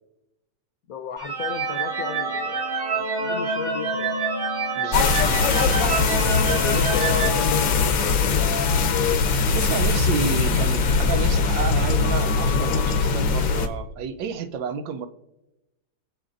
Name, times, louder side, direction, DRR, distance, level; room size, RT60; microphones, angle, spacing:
voice 1, 0.9-4.3 6.4-8.6, left 7 dB, 60° left, 1.1 m, -34 dB
sound 1, 1.2-8.2, right 3 dB, 60° right, 3.2 m, -27 dB
voice 2, 4.8-5.1 9.5-15.1, right 6 dB, 85° right, 1.4 m, -30 dB
sound 2, 4.9-13.7, left 5 dB, 85° left, 1.7 m, -21 dB
23.0 x 7.7 x 2.5 m
omnidirectional pair, 2.0 m